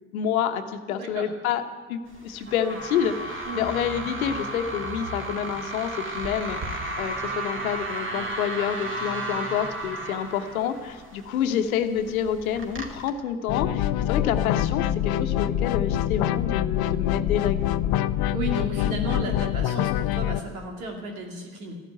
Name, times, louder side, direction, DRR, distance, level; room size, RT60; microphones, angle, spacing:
voice 1, 0.1-1.6 1.9-17.9, left 8 dB, 85° left, 8 dB, 1.1 m, -28 dB
voice 2, 0.9-1.3 3.5-3.6 18.3-21.7, right 1 dB, 90° right, 2 dB, 2.7 m, -33 dB
sound 1, 2.1-13.1, right 2 dB, 30° right, 2.7 m, -34 dB
sound 2, 13.5-20.4, left 12 dB, 60° left, 0.7 m, -25 dB
13.5 x 11.5 x 9.0 m, 1.5 s
hypercardioid pair, 60°, 41 cm